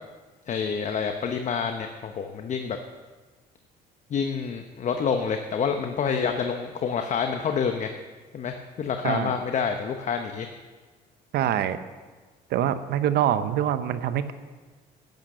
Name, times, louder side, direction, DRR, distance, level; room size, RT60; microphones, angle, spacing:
voice 1, 0.5-2.8 4.1-7.9 8.3-10.5, left 6 dB, 45° left, 6 dB, 0.9 m, -28 dB
voice 2, 11.3-11.8 12.5-14.3, right 10 dB, 75° right, 12 dB, 0.8 m, -24 dB
11.5 x 10.5 x 6.6 m, 1.4 s
cardioid pair, 110°, 17 cm